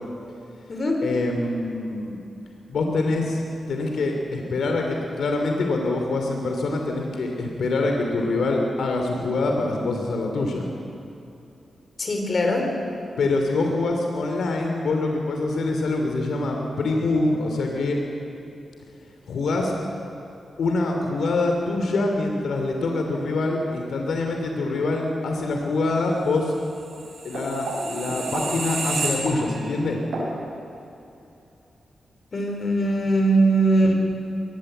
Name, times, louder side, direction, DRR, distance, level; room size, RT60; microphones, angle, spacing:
voice 1, 1.0-2.2 2.7-3.4 3.7-10.7 13.2-18.0 19.3-19.7 20.6-26.5 27.2-30.0, left 2 dB, 85° left, 2 dB, 3.0 m, -25 dB
voice 2, 12.0-12.7 32.3-33.9, right 1 dB, 45° left, 2 dB, 4.8 m, -20 dB
sound 1, 26.8-29.7 30.1-30.3, right 3 dB, 80° right, 6.7 m, -30 dB
23.0 x 19.0 x 8.0 m, 2.8 s
cardioid pair, 95°, 0 cm